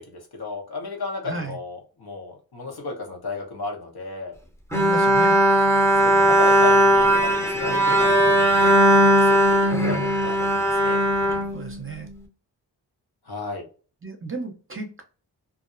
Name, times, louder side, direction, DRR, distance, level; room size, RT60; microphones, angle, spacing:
voice 1, 0.1-4.4 6.0-8.6 9.0-11.0 13.3-13.6, left 3 dB, 60° left, 1 dB, 1.0 m, -34 dB
voice 2, 1.2-1.6 4.7-5.4 11.5-12.1 14.0-15.0, right 3 dB, 30° right, 3 dB, 0.7 m, -33 dB
Bowed string instrument, 4.7-12.1, right 1 dB, 5° left, 0.9 m, -18 dB
2.5 x 2.0 x 2.5 m, 0.37 s
cardioid pair, 40°, 44 cm